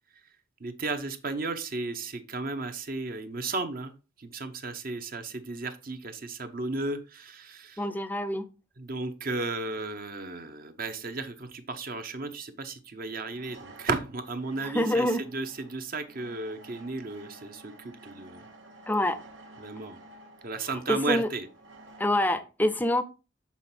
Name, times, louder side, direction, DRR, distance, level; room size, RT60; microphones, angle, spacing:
voice 1, 0.6-3.9 4.2-7.9 8.8-18.4 19.6-20.0 20.4-21.5, right 3 dB, 50° right, 0.8 m, -34 dB
voice 2, 7.8-8.5 14.6-15.2 18.9-19.2 20.9-21.3 22.0-23.0, left 1 dB, 10° left, 0.5 m, -26 dB
sound 1, 11.1-11.3 13.1-22.1, right 1 dB, 90° right, 1.2 m, -52 dB
7.1 x 4.1 x 4.3 m
head